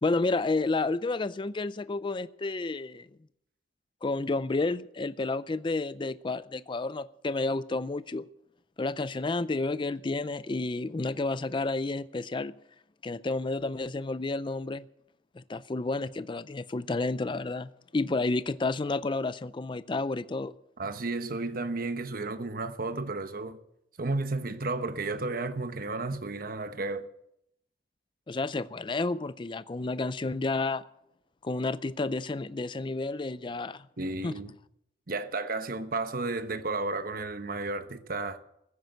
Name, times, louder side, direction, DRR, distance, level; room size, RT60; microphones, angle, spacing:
voice 1, 0.0-3.1 4.0-8.2 8.8-12.5 13.0-14.9 15.4-20.5 28.3-30.8 31.4-33.9 34.2-34.3, left 3 dB, 25° left, 0.4 m, -31 dB
voice 2, 20.8-23.6 24.0-27.1 34.0-34.5 35.1-38.4, right 3 dB, 55° right, 1.1 m, -33 dB
15.0 x 9.4 x 7.9 m
head